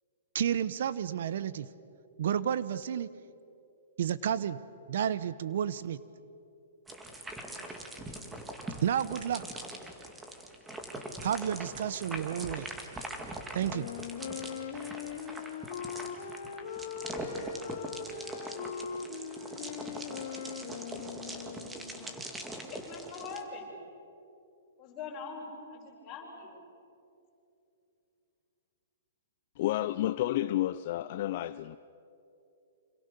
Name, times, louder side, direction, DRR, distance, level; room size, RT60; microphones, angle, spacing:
voice 1, 0.3-1.7 2.2-3.1 4.0-4.6 4.9-6.0 8.8-9.4 11.2-12.7 13.5-13.9, right 9 dB, 65° right, 0.9 m, -31 dB
sound 1, 6.9-23.4, right 1 dB, 10° right, 2.1 m, -42 dB
Wind instrument woodwind instrument, 13.6-22.2, left 6 dB, 65° left, 3.4 m, -40 dB
voice 2, 21.4-22.2 22.6-23.8 24.8-26.6, left 4 dB, 25° left, 7.3 m, -44 dB
voice 3, 29.6-31.8, left 14 dB, 45° left, 0.6 m, -30 dB
28.5 x 27.0 x 6.9 m
hypercardioid pair, 155°, 0 cm